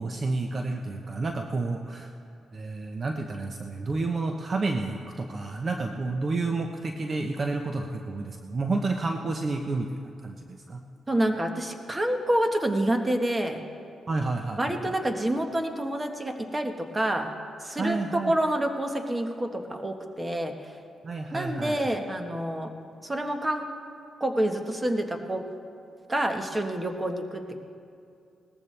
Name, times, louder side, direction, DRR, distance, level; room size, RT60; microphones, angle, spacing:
voice 1, 0.0-2.1 2.5-9.9 10.2-10.8 14.1-15.0 17.8-18.3 21.0-21.8, right 3 dB, 40° right, 4 dB, 0.8 m, -30 dB
voice 2, 11.1-13.6 14.6-17.3 17.6-20.7 21.3-22.7 23.0-23.6 24.2-25.4 26.1-27.6, right 1 dB, 20° right, 5 dB, 1.3 m, -28 dB
19.0 x 14.5 x 3.4 m, 2.4 s
cardioid pair, 85°, 0 cm